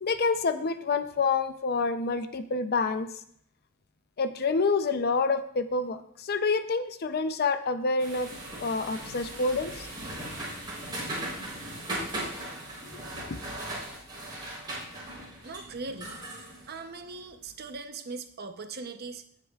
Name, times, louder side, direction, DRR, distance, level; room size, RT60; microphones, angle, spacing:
voice 1, 0.0-3.1 4.2-8.3 8.6-9.9 12.8-13.4, left 4 dB, 45° left, 10 dB, 0.6 m, -28 dB
sound 1, 8.0-17.5, right 1 dB, 20° right, 3.7 m, -38 dB
voice 2, 15.4-16.2 16.7-19.2, right 3 dB, 50° right, 8 dB, 0.8 m, -40 dB
17.5 x 6.6 x 2.4 m, 0.67 s
head